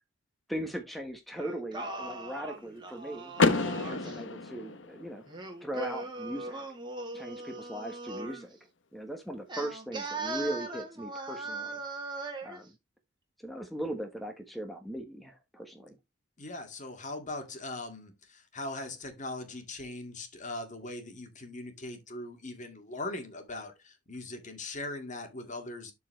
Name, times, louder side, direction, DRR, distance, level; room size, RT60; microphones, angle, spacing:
voice 1, 0.5-3.3 3.7-5.2 5.6-6.7 7.1-8.5 8.9-11.8 12.4-12.8 13.4-16.0, right 1 dB, ahead, 1.3 m, -39 dB
Singing, 1.4-4.2 5.3-8.5 9.5-12.6, right 2 dB, 25° right, 2.3 m, -39 dB
Car / Door, 3.4-5.3, left 3 dB, 70° left, 1.0 m, -29 dB
voice 2, 16.4-25.9, left 2 dB, 40° left, 2.1 m, -40 dB
12.0 x 4.7 x 3.2 m
head